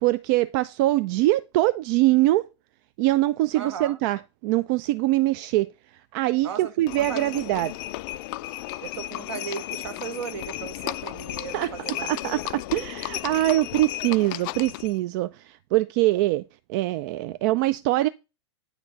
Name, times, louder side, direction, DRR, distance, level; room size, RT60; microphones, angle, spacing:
voice 1, 0.0-2.5 3.0-5.7 6.1-7.7 11.5-16.4 16.7-18.1, right 17 dB, 45° right, 0.3 m, -23 dB
voice 2, 3.5-4.0 6.4-7.3 8.8-12.1, right 7 dB, 65° right, 1.2 m, -36 dB
Livestock farm animals working animals, 6.9-15.0, left 17 dB, 45° left, 0.4 m, -34 dB
9.0 x 4.4 x 3.9 m
hypercardioid pair, 105°, 15 cm